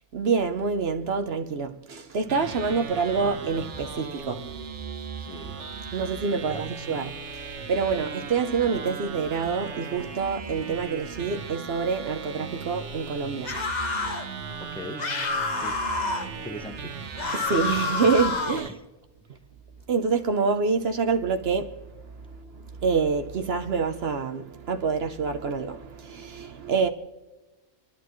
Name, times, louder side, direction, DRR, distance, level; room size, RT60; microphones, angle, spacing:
voice 1, 0.1-4.5 5.9-13.6 15.7-15.8 17.3-18.8 19.9-21.8 22.1-26.9, right 5 dB, 65° right, 1.0 m, -27 dB
sound 1, 2.3-18.7, right 5 dB, 85° right, 1.3 m, -37 dB
voice 2, 5.2-5.6 6.3-6.7 14.7-15.1 15.6-16.1 16.4-17.0, left 1 dB, 5° left, 0.8 m, -41 dB
sound 2, 13.4-14.3 15.0-16.3 17.2-18.7, left 4 dB, 40° left, 1.0 m, -28 dB
27.5 x 11.5 x 3.1 m
omnidirectional pair, 1.2 m